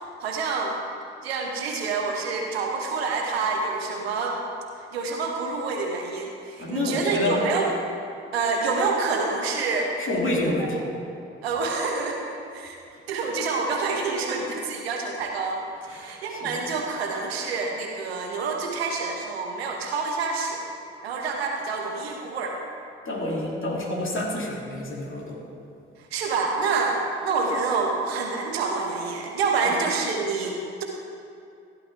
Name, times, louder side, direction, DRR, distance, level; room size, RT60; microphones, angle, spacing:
voice 1, 0.2-0.7 1.2-4.4 4.9-7.7 8.3-9.9 10.6-10.7 11.4-12.2 12.5-12.7 13.1-15.6 15.9-20.6 21.0-22.6 26.1-30.8, right 4 dB, 85° right, 1 dB, 1.1 m, -27 dB
voice 2, 6.6-7.4 10.0-10.8 15.9-16.6 23.0-25.5 29.6-29.8, left 1 dB, 40° left, -3 dB, 2.9 m, -28 dB
15.0 x 11.5 x 3.5 m, 2.5 s
figure-of-eight pair, 40°, 30 cm